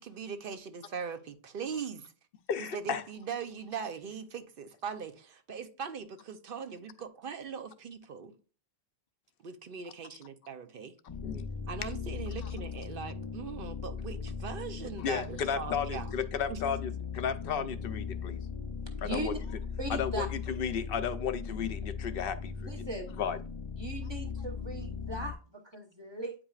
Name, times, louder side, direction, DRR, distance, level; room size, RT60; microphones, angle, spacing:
voice 1, 0.0-2.1 2.6-8.4 9.4-10.9 11.7-16.1 16.5-16.6, right 6 dB, 65° right, 0.8 m, -40 dB
voice 2, 2.5-3.0 11.2-11.4 12.4-12.5 15.0-18.4 19.0-19.3 19.9-22.5 23.2-23.4, left 7 dB, 70° left, 0.8 m, -33 dB
sound 1, 11.1-25.3, left 6 dB, 35° left, 0.5 m, -39 dB
voice 3, 19.0-19.4 19.8-20.3 22.6-23.2 23.8-26.3, right 2 dB, 25° right, 1.1 m, -38 dB
8.8 x 4.9 x 2.4 m
omnidirectional pair, 1.0 m